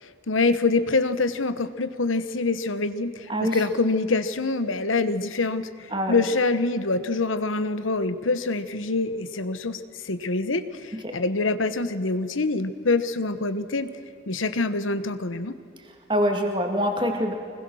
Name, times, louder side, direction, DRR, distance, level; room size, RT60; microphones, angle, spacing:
voice 1, 0.0-13.9 14.3-15.5, left 3 dB, 85° left, 12 dB, 1.1 m, -25 dB
voice 2, 5.9-6.2 10.9-11.1 16.1-17.3, equal, 25° right, 3 dB, 2.3 m, -25 dB
24.5 x 20.5 x 6.4 m, 2.5 s
head